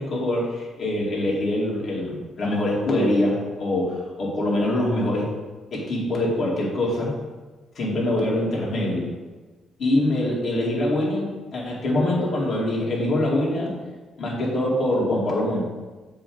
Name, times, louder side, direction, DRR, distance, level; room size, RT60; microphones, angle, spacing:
voice 1, 0.0-5.3 5.7-7.1 7.7-9.1 9.8-13.7 14.2-15.7, left 1 dB, 60° left, -4 dB, 2.6 m, -24 dB
7.4 x 3.7 x 6.2 m, 1.3 s
cardioid pair, 90°, 0 cm